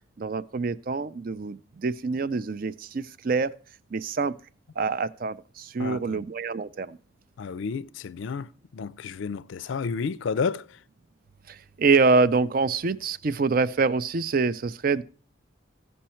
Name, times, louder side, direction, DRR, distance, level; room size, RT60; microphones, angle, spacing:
voice 1, 0.2-3.5 3.9-4.3 4.8-7.0 11.5-15.0, right 4 dB, 45° right, 0.4 m, -25 dB
voice 2, 5.8-6.2 7.4-8.5 8.7-10.7, left 5 dB, 70° left, 0.4 m, -31 dB
15.0 x 5.5 x 4.3 m
head